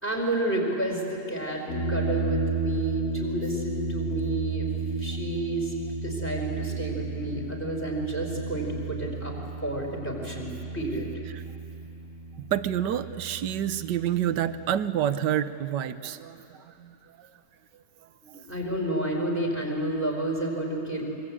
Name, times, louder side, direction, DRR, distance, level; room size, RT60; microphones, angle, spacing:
voice 1, 0.0-4.7 5.0-5.7 6.0-9.3 9.6-11.1 18.2-21.0, right 1 dB, 5° left, -1 dB, 4.5 m, -30 dB
sound 1, 1.7-14.8, right 3 dB, 70° left, 4.8 m, -33 dB
voice 2, 12.4-17.3, right 10 dB, 75° right, 13 dB, 1.5 m, -28 dB
25.5 x 23.5 x 8.6 m, 2.7 s
omnidirectional pair, 1.9 m